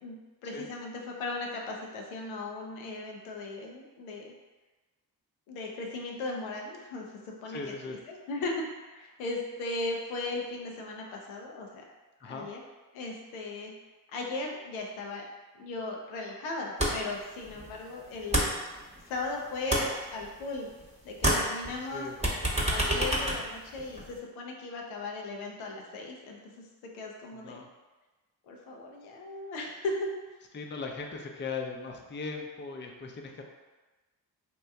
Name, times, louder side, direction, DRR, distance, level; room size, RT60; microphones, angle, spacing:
voice 1, 0.0-4.3 5.5-7.1 7.4-7.6 7.8-11.8 12.2-12.6 12.9-13.7 14.1-15.2 15.6-18.4 19.1-20.7 21.0-22.1 22.5-26.4 26.9-27.6 28.5-30.1, left 2 dB, 90° left, 0 dB, 0.5 m, -37 dB
voice 2, 7.5-8.0 12.2-12.5 17.5-17.7 21.9-22.2 27.3-27.7 30.5-33.4, left 4 dB, 25° left, 2 dB, 0.5 m, -39 dB
sound 1, 16.8-17.2 17.5-19.2 19.5-20.9 21.1-24.2, right 1 dB, 15° right, 0.8 m, -29 dB
2.9 x 2.2 x 3.3 m, 1.2 s
supercardioid pair, 40°, 47 cm